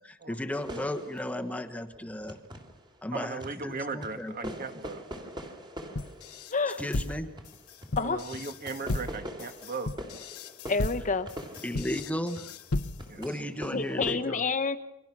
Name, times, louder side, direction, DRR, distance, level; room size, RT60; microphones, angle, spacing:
voice 1, 0.0-2.4 3.0-4.5 6.8-7.3 11.6-12.5 13.2-14.4, left 1 dB, 5° left, 6 dB, 1.2 m, -35 dB
sound 1, 0.5-3.0 3.4-14.1, equal, 20° right, 3.0 m, -44 dB
voice 2, 3.1-5.0 8.0-9.9 13.1-13.2, right 4 dB, 45° right, 8 dB, 1.9 m, -37 dB
sound 2, 5.9-13.2, left 2 dB, 85° left, 1.1 m, -35 dB
voice 3, 6.5-6.8 8.0-8.2 10.7-11.3 13.7-14.8, left 4 dB, 35° left, 9 dB, 1.1 m, -28 dB
29.0 x 24.5 x 6.1 m, 0.87 s
head